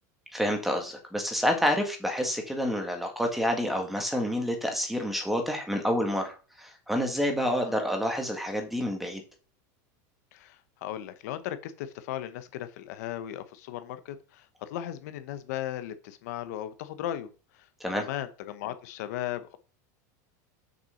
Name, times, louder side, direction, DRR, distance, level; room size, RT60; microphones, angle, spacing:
voice 1, 0.3-9.2 17.8-18.0, equal, ahead, 4 dB, 1.8 m, -28 dB
voice 2, 10.3-17.7 17.9-19.5, left 12 dB, 70° left, 11 dB, 1.1 m, -37 dB
6.7 x 6.1 x 5.7 m, 0.35 s
supercardioid pair, 155°, 9 cm